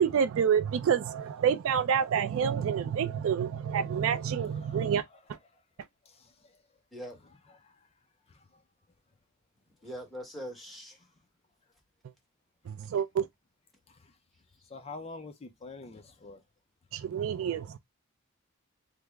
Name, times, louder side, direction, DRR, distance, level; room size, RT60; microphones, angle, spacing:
voice 1, 0.0-5.0 12.7-13.3 16.9-17.8, right 7 dB, 70° right, 0.3 m, -28 dB
voice 2, 4.4-5.2 5.5-5.6 6.0-6.6 7.1-7.9 8.3-8.6 11.0-11.1 13.9-14.2 14.6-16.4, left 3 dB, 30° left, 0.4 m, -48 dB
voice 3, 9.8-11.0, equal, ahead, 1.0 m, -41 dB
3.3 x 2.0 x 3.3 m
head